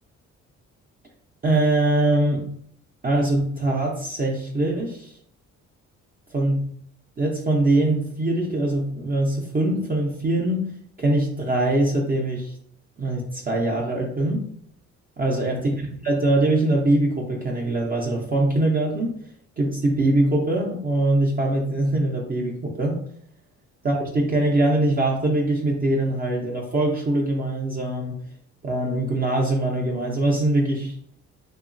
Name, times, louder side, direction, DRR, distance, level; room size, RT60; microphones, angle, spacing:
voice 1, 1.4-2.5 3.0-5.2 6.3-6.7 7.2-10.7 11.0-12.5 13.0-14.5 15.2-19.1 19.6-23.0 23.8-28.2 28.6-31.0, right 1 dB, 30° right, -1 dB, 0.5 m, -22 dB
2.9 x 2.3 x 2.5 m, 0.62 s
cardioid pair, 90°, 30 cm